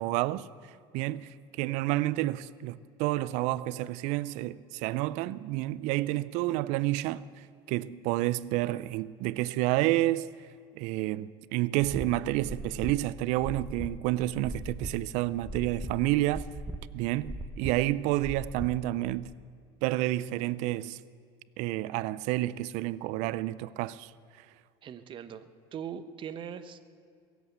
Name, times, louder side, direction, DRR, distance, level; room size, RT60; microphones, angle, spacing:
voice 1, 0.0-10.3 10.8-16.5 16.9-19.3 19.8-21.0 21.6-24.1, right 16 dB, 65° right, 0.5 m, -30 dB
sound 1, 11.8-19.2, right 1 dB, 10° right, 1.0 m, -40 dB
voice 2, 24.8-26.9, right 8 dB, 40° right, 1.0 m, -41 dB
21.5 x 8.2 x 8.1 m
supercardioid pair, 105°, 13 cm